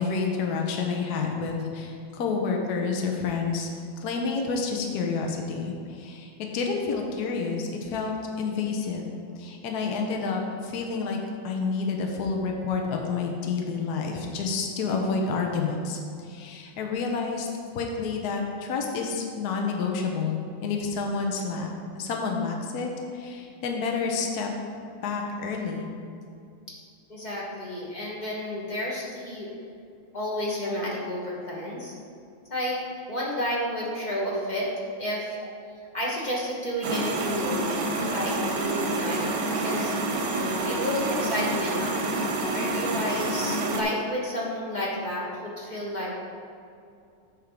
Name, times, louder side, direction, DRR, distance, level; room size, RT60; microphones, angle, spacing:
voice 1, 0.0-3.7 4.0-9.1 9.4-11.2 11.4-17.5 17.7-21.7 22.0-24.5 25.0-25.9, left 4 dB, 60° left, 1 dB, 1.2 m, -29 dB
voice 2, 27.1-29.5 30.1-31.9 32.5-32.8 33.1-34.7 34.9-35.4 35.9-40.0 40.3-42.2 42.4-46.2, equal, 30° left, -5 dB, 1.0 m, -31 dB
sound 1, 36.8-43.8, right 2 dB, 65° right, 1.3 m, -28 dB
8.5 x 3.6 x 6.0 m, 2.5 s
omnidirectional pair, 2.2 m